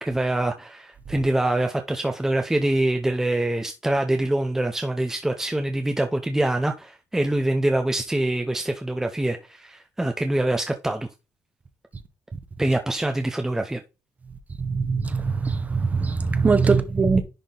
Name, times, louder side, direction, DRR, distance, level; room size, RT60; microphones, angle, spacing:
voice 1, 0.0-11.1 12.6-13.8, right 1 dB, 5° right, 0.6 m, -24 dB
voice 2, 14.7-17.2, right 4 dB, 25° right, 0.9 m, -21 dB
10.5 x 3.6 x 3.9 m
cardioid pair, 120°, 6 cm